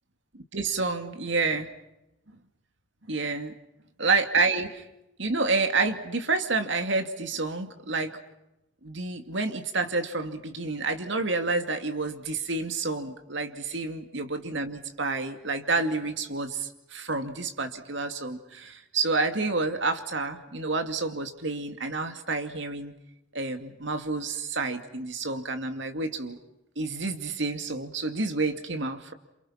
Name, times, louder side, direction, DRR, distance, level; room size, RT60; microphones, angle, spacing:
voice 1, 0.3-1.7 3.1-3.5 4.0-4.8 5.2-8.1 8.8-22.9 23.3-26.4 26.8-29.1, right 3 dB, 70° right, 7 dB, 2.4 m, -29 dB
28.5 x 28.0 x 5.8 m, 0.89 s
head